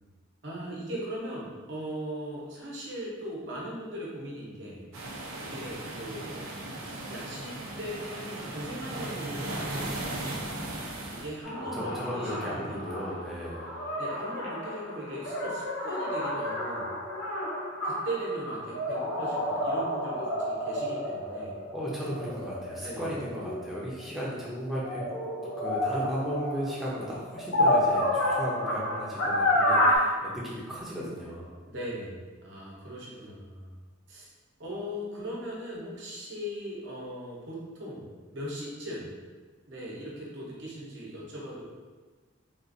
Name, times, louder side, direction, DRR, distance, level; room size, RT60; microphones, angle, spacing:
voice 1, 0.4-4.9 5.4-6.5 6.8-10.4 11.1-12.9 14.0-16.9 17.8-21.6 22.8-23.2 31.7-33.8 34.1-34.3 34.6-38.1 38.3-39.1 39.7-41.6, right 1 dB, 60° right, -4 dB, 0.9 m, -39 dB
sound 1, 4.9-11.4, right 1 dB, 90° right, 0.5 m, -37 dB
sound 2, 11.4-24.2 24.7-30.0, left 1 dB, 70° left, 0.6 m, -30 dB
voice 2, 11.5-13.7 21.7-25.1 25.4-31.5, equal, ahead, -7 dB, 0.6 m, -35 dB
3.9 x 2.5 x 2.6 m, 1.4 s
head